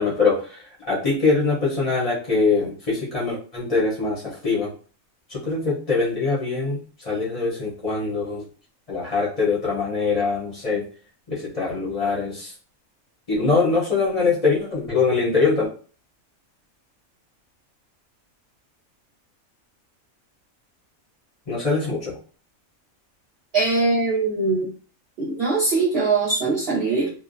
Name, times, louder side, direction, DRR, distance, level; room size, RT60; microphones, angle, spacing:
voice 1, 0.0-4.7 5.3-8.5 8.9-10.9 11.3-12.5 13.3-15.7 21.5-22.2, left 4 dB, 35° left, -6 dB, 0.6 m, -23 dB
voice 2, 23.5-24.7 25.2-27.1, right 3 dB, 55° right, -7 dB, 0.8 m, -21 dB
2.4 x 2.1 x 2.5 m, 0.40 s
omnidirectional pair, 1.4 m